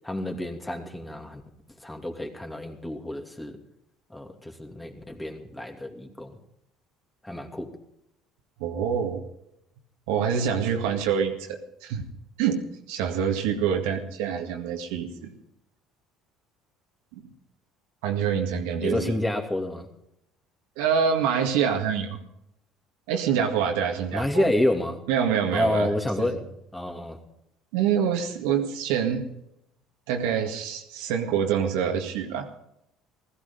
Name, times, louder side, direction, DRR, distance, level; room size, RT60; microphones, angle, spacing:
voice 1, 0.0-1.4 1.8-3.6 4.1-6.4 7.2-7.7 18.8-19.9 24.1-25.0 25.5-26.4 26.7-27.2, left 1 dB, 10° left, 4 dB, 2.8 m, -29 dB
voice 2, 8.6-9.2 10.1-12.0 12.4-15.3 17.1-17.2 18.0-19.2 20.8-22.2 23.1-24.5 25.1-25.9 26.2-26.4 27.7-29.3 30.1-32.6, right 7 dB, 80° right, 3 dB, 2.1 m, -26 dB
16.5 x 14.5 x 5.4 m, 0.79 s
hypercardioid pair, 75°, 0 cm